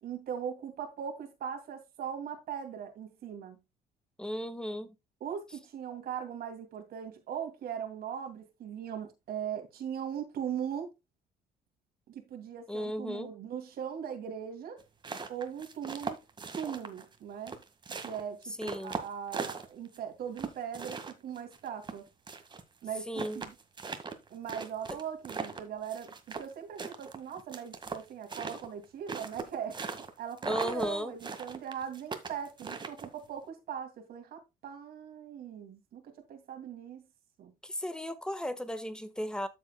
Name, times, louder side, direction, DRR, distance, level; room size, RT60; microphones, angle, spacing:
voice 1, 0.0-3.6 5.2-10.9 12.1-14.8 15.3-16.1 16.5-17.6 18.0-22.0 22.8-23.5 24.3-29.8 30.2-37.0 37.4-37.5, right 8 dB, 65° right, 2.5 m, -40 dB
voice 2, 4.2-4.9 12.7-13.3 18.6-18.9 23.1-23.4 30.4-31.1 37.6-39.5, equal, 5° left, 1.3 m, -35 dB
sound 1, 14.8-17.2 17.5-20.0 20.4-22.6 22.9-23.0 23.2-26.5 26.8-30.1 30.4-30.9 31.2-33.3, right 4 dB, 25° right, 1.7 m, -39 dB
13.0 x 7.2 x 2.2 m
cardioid pair, 110°, 17 cm